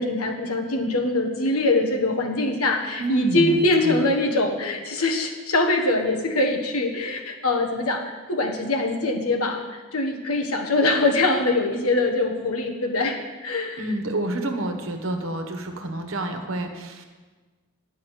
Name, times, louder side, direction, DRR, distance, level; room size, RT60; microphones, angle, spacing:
voice 1, 0.0-13.8, left 2 dB, 85° left, 3 dB, 1.4 m, -23 dB
voice 2, 3.0-4.0 13.8-17.0, right 1 dB, 65° right, 5 dB, 1.2 m, -29 dB
10.5 x 5.5 x 8.1 m, 1.3 s
head